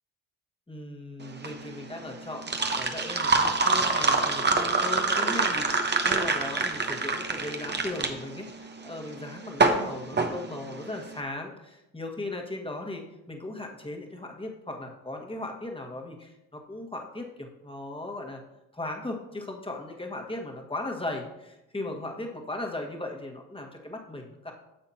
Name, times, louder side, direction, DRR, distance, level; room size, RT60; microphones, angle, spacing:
voice 1, 0.7-18.4 18.7-24.5, left 2 dB, 15° left, 1 dB, 1.7 m, -37 dB
sound 1, 1.2-11.1, right 3 dB, 25° right, 1.1 m, -26 dB
10.0 x 6.9 x 2.9 m, 0.93 s
hypercardioid pair, 45°, 40 cm